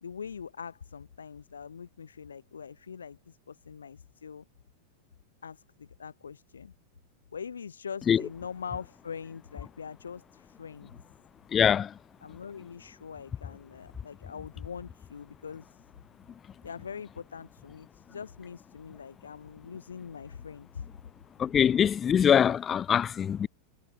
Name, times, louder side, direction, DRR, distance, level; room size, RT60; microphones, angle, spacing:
voice 1, 0.0-4.4 5.4-6.7 7.3-10.9 12.2-15.9 16.6-20.8, left 6 dB, 70° left, 1.7 m, -43 dB
voice 2, 11.5-11.9 21.4-23.5, left 8 dB, 25° left, 0.3 m, -23 dB
figure-of-eight pair, 90°, 0 cm